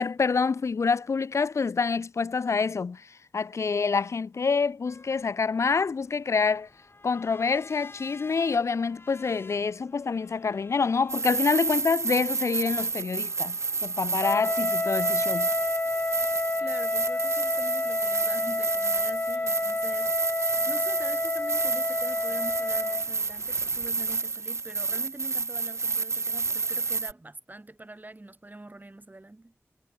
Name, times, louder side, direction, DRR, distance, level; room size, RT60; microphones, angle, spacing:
voice 1, 0.0-6.7 7.0-15.5, left 5 dB, 90° left, 0.6 m, -27 dB
sound 1, 4.9-24.2, left 3 dB, 55° left, 2.1 m, -54 dB
sound 2, 11.1-27.1, right 4 dB, 75° right, 0.5 m, -30 dB
Wind instrument woodwind instrument, 14.2-23.1, left 2 dB, 35° left, 0.6 m, -29 dB
voice 2, 16.6-29.5, right 2 dB, 40° right, 4.4 m, -44 dB
wide cardioid pair, 50°, 5 cm